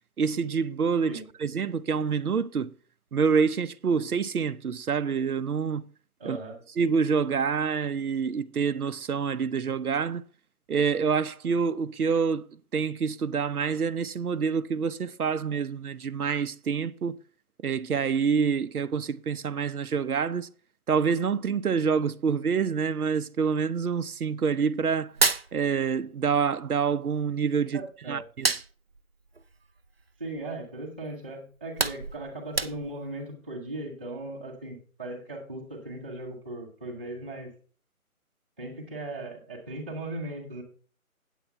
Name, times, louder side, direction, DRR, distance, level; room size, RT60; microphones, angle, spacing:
voice 1, 0.2-2.7 3.1-5.8 6.2-6.4 6.8-10.2 10.7-12.5 12.7-17.2 17.6-20.5 20.9-25.1 25.5-27.8 28.1-28.5, right 6 dB, 85° right, 0.8 m, -27 dB
voice 2, 6.2-6.6 27.7-28.3 30.2-37.5 38.6-40.6, right 2 dB, 5° right, 1.0 m, -38 dB
Hands, 25.0-26.3 26.6-27.8 28.2-30.6 31.0-31.1 31.5-33.1, right 4 dB, 45° right, 0.5 m, -29 dB
9.2 x 7.5 x 4.3 m
figure-of-eight pair, 165°, 43 cm